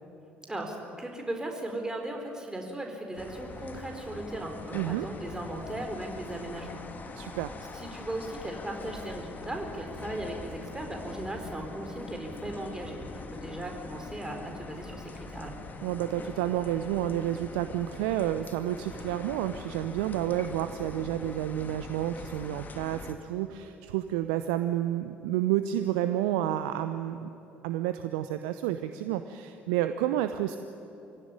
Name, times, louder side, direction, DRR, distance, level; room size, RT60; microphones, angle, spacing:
voice 1, 0.5-7.1 7.7-15.5, right 1 dB, 15° right, 2 dB, 4.5 m, -37 dB
sound 1, 3.2-23.1, left 4 dB, 35° left, 2.2 m, -43 dB
voice 2, 4.7-5.1 7.2-7.5 15.8-27.3 27.6-30.6, right 12 dB, 70° right, 10 dB, 0.7 m, -30 dB
24.0 x 16.5 x 10.0 m, 2.8 s
figure-of-eight pair, 55°, 5 cm